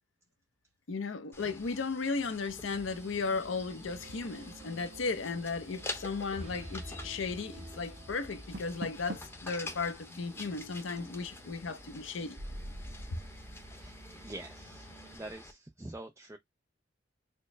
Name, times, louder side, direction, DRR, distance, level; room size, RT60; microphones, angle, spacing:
voice 1, 0.9-12.4, left 4 dB, 85° left, 0.6 m, -35 dB
sound 1, 1.3-15.5, left 2 dB, 10° left, 0.8 m, -48 dB
sound 2, 2.4-15.2, right 1 dB, 35° right, 0.9 m, -49 dB
Door, 8.3-9.5, right 1 dB, 65° right, 0.7 m, -43 dB
voice 2, 14.2-14.9 15.1-16.4, right 2 dB, 15° right, 0.4 m, -45 dB
4.4 x 2.0 x 3.1 m
head